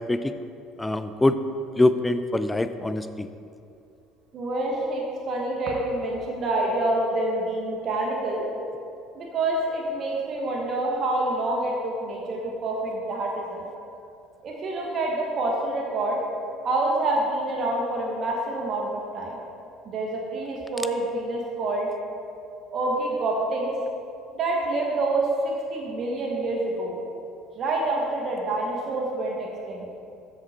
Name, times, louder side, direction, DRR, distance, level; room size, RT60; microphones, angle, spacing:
voice 1, 0.8-1.4 1.8-3.3, left 2 dB, 10° left, 11 dB, 0.5 m, -23 dB
voice 2, 4.3-8.4 9.1-13.7 14.4-16.2 16.6-19.4 19.8-21.9 22.7-23.7 24.3-27.0 27.6-29.9, right 2 dB, 50° right, -2 dB, 1.4 m, -27 dB
8.7 x 6.4 x 4.3 m, 2.5 s
supercardioid pair, 90°, 0 cm